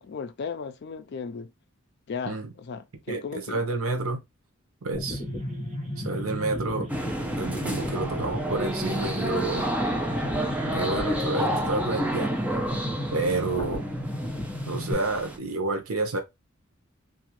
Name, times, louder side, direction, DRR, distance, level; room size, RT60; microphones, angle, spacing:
voice 1, 0.0-1.5 2.1-3.6, left 5 dB, 55° left, 0.4 m, -36 dB
voice 2, 3.1-4.2 4.8-5.2 6.0-6.9 7.3-9.7 10.7-12.3 13.1-13.9 14.7-16.2, right 3 dB, 85° right, 0.8 m, -29 dB
sound 1, 4.9-14.9, left 1 dB, 20° left, 0.8 m, -33 dB
sound 2, 5.0-11.8, left 1 dB, 35° right, 0.7 m, -42 dB
sound 3, 6.9-15.4, right 1 dB, 5° right, 0.4 m, -31 dB
2.6 x 2.3 x 2.9 m
head